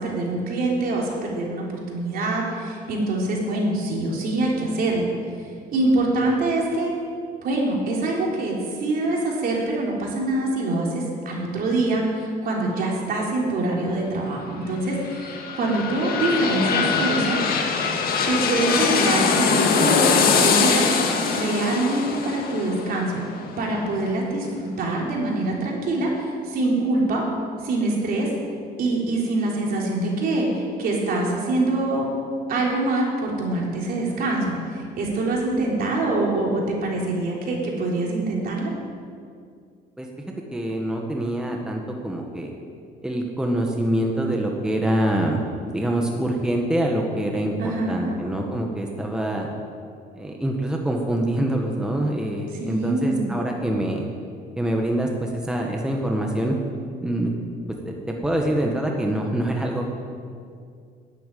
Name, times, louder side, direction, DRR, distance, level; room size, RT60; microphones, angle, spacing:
voice 1, 0.0-5.1 5.7-6.9 7.4-17.4 18.3-23.2 23.6-27.2 27.6-28.3 28.8-32.1 32.5-38.7 47.6-48.2 52.6-53.3, right 2 dB, 60° right, -2 dB, 3.6 m, -24 dB
sound 1, 14.8-24.5 24.9-25.0, left 5 dB, 65° left, 1.8 m, -23 dB
voice 2, 40.5-42.5 43.0-45.4 45.7-49.5 50.1-54.0 54.6-56.6 57.0-57.3 57.8-57.9 58.2-59.9, right 1 dB, 5° right, 0 dB, 1.5 m, -25 dB
10.5 x 8.9 x 9.2 m, 2.2 s
cardioid pair, 110°, 17 cm